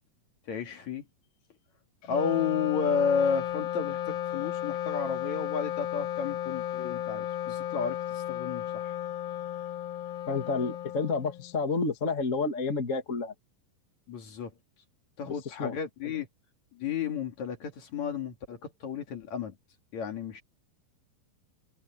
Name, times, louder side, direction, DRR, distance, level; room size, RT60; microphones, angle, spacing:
voice 1, 0.5-1.0 2.1-8.0 8.3-8.9 14.1-14.5 15.2-16.3 16.8-19.5 19.9-20.4, left 6 dB, 55° left, 3.3 m, -32 dB
Wind instrument woodwind instrument, 2.0-11.6, left 11 dB, 75° left, 3.0 m, -34 dB
voice 2, 10.3-13.3 15.6-15.8 16.0-16.2, left 4 dB, 25° left, 1.9 m, -30 dB
omnidirectional pair, 4.2 m